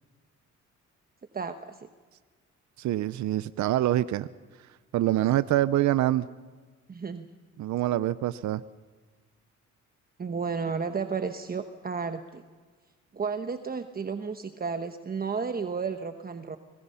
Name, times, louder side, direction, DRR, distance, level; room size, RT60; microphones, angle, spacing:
voice 1, 1.3-1.9 6.9-7.3 10.2-12.4 13.1-16.6, right 5 dB, 30° right, 7 dB, 1.1 m, -32 dB
voice 2, 2.8-4.3 4.9-6.3 7.6-8.6, right 14 dB, 70° right, 15 dB, 0.6 m, -25 dB
25.0 x 21.0 x 5.6 m, 1.5 s
cardioid pair, 90°, 30 cm